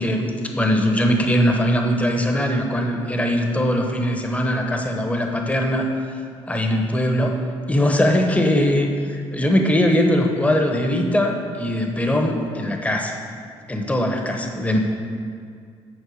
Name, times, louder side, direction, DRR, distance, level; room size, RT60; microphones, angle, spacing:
voice 1, 0.0-5.9 6.5-7.4 7.7-13.2 13.7-14.8, equal, 15° left, 3 dB, 1.0 m, -21 dB
9.7 x 4.4 x 6.5 m, 2.2 s
cardioid pair, 100°, 11 cm